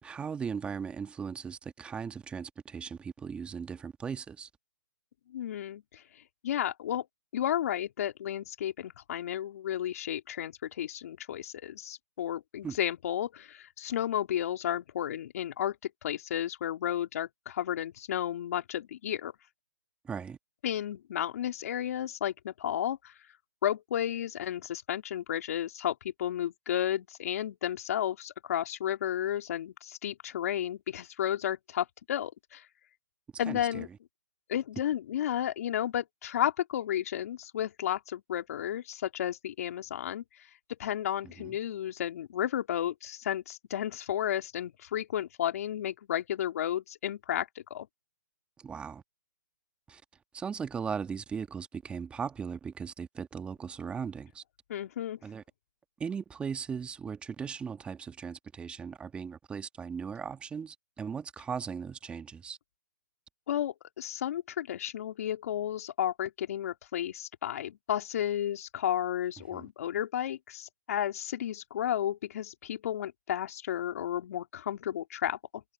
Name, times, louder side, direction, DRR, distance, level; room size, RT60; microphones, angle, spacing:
voice 1, 0.0-4.5 12.6-12.8 20.0-20.4 33.4-33.9 41.4-41.6 48.6-49.0 49.9-50.0 50.3-54.4 55.2-55.4 56.0-62.6 69.5-69.7, right 6 dB, 10° right, 1.5 m, -38 dB
voice 2, 5.3-6.0 6.4-7.1 7.3-15.8 16.0-19.3 20.6-23.1 23.6-32.6 33.4-33.9 34.5-40.2 40.8-47.9 54.7-55.2 63.5-75.6, left 10 dB, 55° left, 3.2 m, -32 dB
hypercardioid pair, 140°, 10 cm